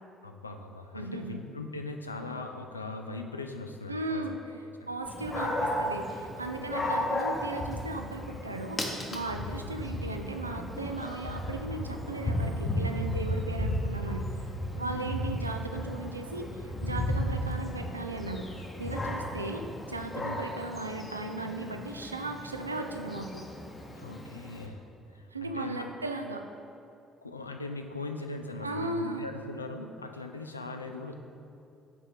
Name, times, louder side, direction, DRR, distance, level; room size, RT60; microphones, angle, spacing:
voice 1, 0.2-4.2 4.8-4.9 6.6-6.9 9.3-9.5 14.8-15.2 20.2-20.4 23.9-25.9 27.2-31.1, left 3 dB, 90° left, 5 dB, 0.3 m, -40 dB
voice 2, 0.9-1.4 3.9-4.4 4.9-14.3 14.8-18.5 18.8-23.4 25.3-26.5 28.6-29.3, right 2 dB, 90° right, 4 dB, 0.3 m, -36 dB
Dog, 5.1-24.7, left 1 dB, 25° left, 1.0 m, -34 dB
6.9 x 4.3 x 4.8 m, 2.6 s
figure-of-eight pair, 50°, 0 cm